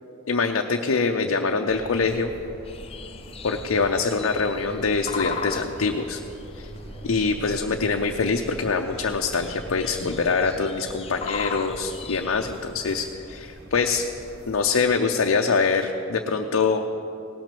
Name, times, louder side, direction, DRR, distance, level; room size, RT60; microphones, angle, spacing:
voice 1, 0.3-2.3 3.4-6.2 6.5-6.7 7.0-14.0 14.5-16.8, left 4 dB, 70° left, 2 dB, 0.6 m, -24 dB
sound 1, 1.6-14.7, equal, 50° right, 2.1 m, -43 dB
sound 2, 2.7-12.7, left 6 dB, 25° left, 0.4 m, -39 dB
18.0 x 6.2 x 6.8 m, 2.8 s
head